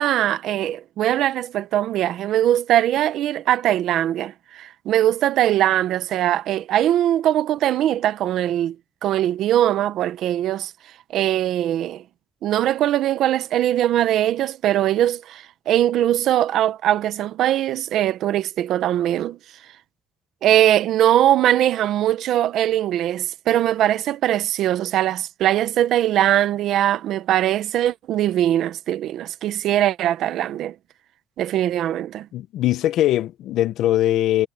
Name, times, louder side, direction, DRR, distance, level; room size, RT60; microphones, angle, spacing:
voice 1, 0.0-8.7 9.0-10.7 11.1-12.0 12.4-19.4 20.4-30.7 31.4-32.3, right 12 dB, 80° right, 1.0 m, -21 dB
voice 2, 32.3-34.5, left 13 dB, 85° left, 0.8 m, -21 dB
cardioid pair, 90°, 0 cm